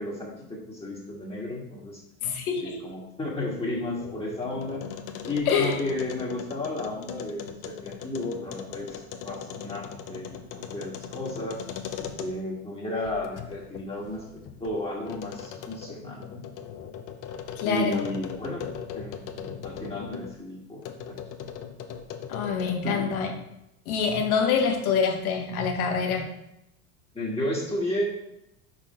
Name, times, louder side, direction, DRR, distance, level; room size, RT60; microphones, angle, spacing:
voice 1, 0.0-2.0 2.5-4.8 5.2-11.6 12.0-14.2 14.6-16.5 17.6-21.7 22.8-23.1 27.1-28.0, left 1 dB, 15° left, -4 dB, 1.7 m, -33 dB
voice 2, 2.2-2.8 5.5-5.8 17.6-18.1 22.3-23.3 23.9-26.3, left 6 dB, 75° left, 3 dB, 1.4 m, -26 dB
sound 1, 3.6-12.6 13.0-20.3 20.8-22.9, left 8 dB, 45° left, 0.9 m, -40 dB
5.8 x 4.6 x 4.3 m, 0.84 s
hypercardioid pair, 90°, 43 cm